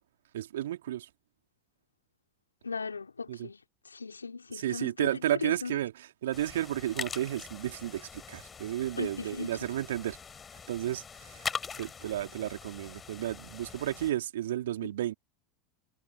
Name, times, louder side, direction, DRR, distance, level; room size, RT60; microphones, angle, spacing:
voice 1, 0.3-1.1 3.3-3.5 4.5-5.9 6.2-10.2 10.7-11.5 11.8-15.1, right 13 dB, 70° right, 3.3 m, -32 dB
voice 2, 2.6-3.6 3.8-5.8 9.0-9.7 14.8-14.9, left 4 dB, 85° left, 2.8 m, -38 dB
sound 1, 6.3-14.1, left 6 dB, 25° left, 4.6 m, -42 dB
figure-of-eight pair, 80°, 0 cm